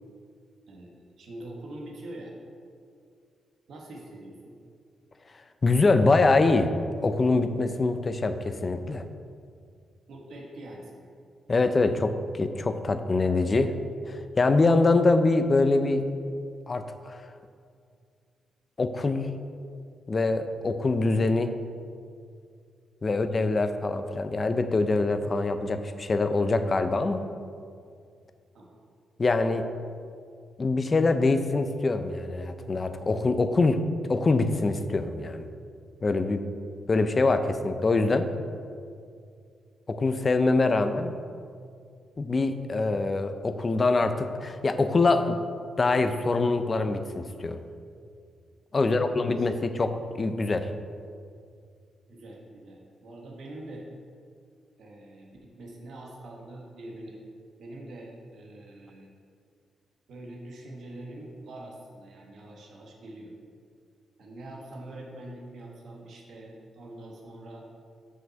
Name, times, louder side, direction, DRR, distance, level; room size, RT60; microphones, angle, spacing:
voice 1, 1.2-2.3 3.7-4.5 10.1-11.1 28.5-28.8 48.7-49.8 52.1-53.9 54.8-57.2 57.6-59.1 60.1-63.3 64.2-67.7, right 1 dB, 60° right, -1 dB, 1.3 m, -44 dB
voice 2, 5.6-6.7 7.0-9.0 11.5-13.8 14.1-16.0 16.7-17.3 18.8-19.3 20.1-21.5 23.0-27.2 29.2-29.7 30.6-33.8 34.1-35.5 36.0-36.4 36.9-38.3 39.9-41.1 42.2-45.4 45.8-47.6 48.7-50.7, left 3 dB, 25° left, 9 dB, 0.4 m, -24 dB
6.1 x 5.6 x 6.9 m, 2.3 s
wide cardioid pair, 165°, 0 cm